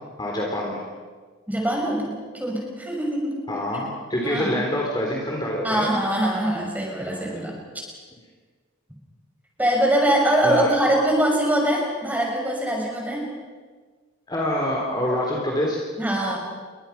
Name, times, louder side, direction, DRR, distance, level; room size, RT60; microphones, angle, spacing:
voice 1, 0.2-0.8 3.5-5.9 10.4-10.7 14.3-15.8, left 1 dB, 20° left, -2 dB, 3.6 m, -26 dB
voice 2, 1.5-2.1 2.4-3.3 4.2-4.6 5.6-7.5 9.6-13.3 16.0-16.4, right 1 dB, 10° right, -1 dB, 6.2 m, -23 dB
30.0 x 23.0 x 5.9 m, 1.5 s
head